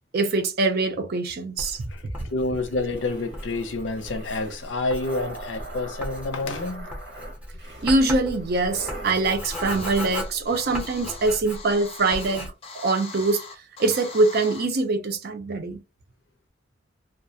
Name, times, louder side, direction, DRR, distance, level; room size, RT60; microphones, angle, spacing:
voice 1, 0.1-1.9 2.2-2.3 7.8-13.4 13.8-15.8, right 3 dB, 60° right, 0.5 m, -23 dB
Writing, 1.6-11.8 12.1-12.5, equal, 10° right, 0.6 m, -37 dB
voice 2, 2.3-6.9, left 2 dB, 80° left, 0.5 m, -28 dB
sound 1, 2.8-11.3, right 1 dB, 75° right, 0.9 m, -42 dB
sound 2, 9.1-14.7, left 4 dB, 30° left, 0.5 m, -41 dB
2.3 x 2.0 x 2.6 m
head